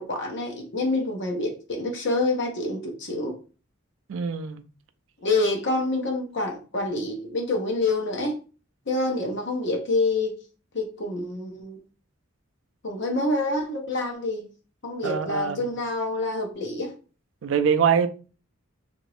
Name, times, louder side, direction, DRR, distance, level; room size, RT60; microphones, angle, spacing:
voice 1, 0.0-3.3 5.2-8.4 8.9-10.4 10.7-11.8 12.8-14.5 14.8-16.9, left 2 dB, 55° left, 0.9 m, -27 dB
voice 2, 4.1-4.6 15.0-15.6 17.4-18.1, right 7 dB, 65° right, 0.4 m, -23 dB
2.9 x 2.6 x 3.1 m
head